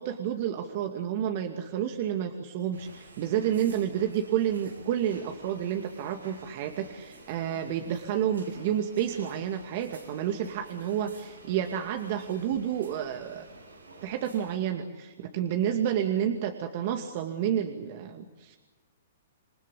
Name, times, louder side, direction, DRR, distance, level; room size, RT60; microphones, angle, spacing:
voice 1, 0.0-13.5 14.0-18.6, right 9 dB, 50° right, 4 dB, 2.3 m, -30 dB
sound 1, 2.7-14.6, right 2 dB, 90° right, 7.3 m, -51 dB
28.0 x 21.0 x 8.5 m, 1.3 s
hypercardioid pair, 125°, 0 cm